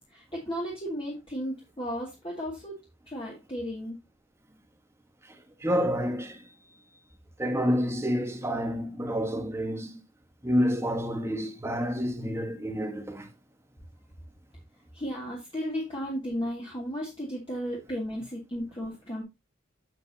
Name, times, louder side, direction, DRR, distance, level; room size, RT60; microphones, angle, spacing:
voice 1, 0.1-2.7 3.1-4.0 14.9-19.2, equal, 30° left, 2.3 m, -34 dB
voice 2, 5.3-6.5 7.4-10.0 10.4-13.3, equal, 15° right, 1.3 m, -29 dB
8.2 x 7.6 x 2.8 m
head